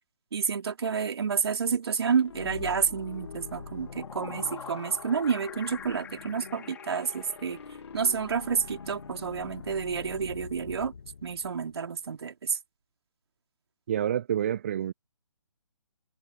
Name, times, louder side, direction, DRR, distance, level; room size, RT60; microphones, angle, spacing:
voice 1, 0.3-7.6 7.9-10.9 11.2-12.6, right 6 dB, 50° right, 3.4 m, -29 dB
sound 1, 2.2-12.0, left 5 dB, 55° left, 2.6 m, -44 dB
sound 2, 3.6-8.1, left 8 dB, 10° left, 3.8 m, -45 dB
voice 2, 13.9-14.9, right 10 dB, 25° right, 0.4 m, -28 dB
figure-of-eight pair, 140°, 17 cm